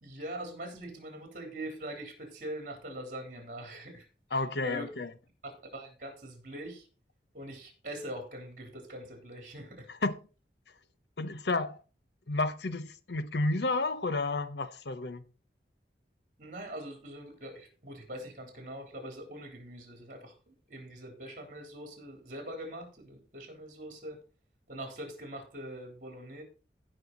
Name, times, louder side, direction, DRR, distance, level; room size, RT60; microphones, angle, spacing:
voice 1, 0.0-4.9 5.4-6.9 7.3-9.9 16.4-24.2 24.7-26.4, right 1 dB, 45° right, 3.4 m, -43 dB
voice 2, 4.3-5.1 9.9-10.1 11.2-11.8 12.3-15.2, left 2 dB, 65° left, 0.8 m, -31 dB
15.5 x 5.6 x 4.0 m
head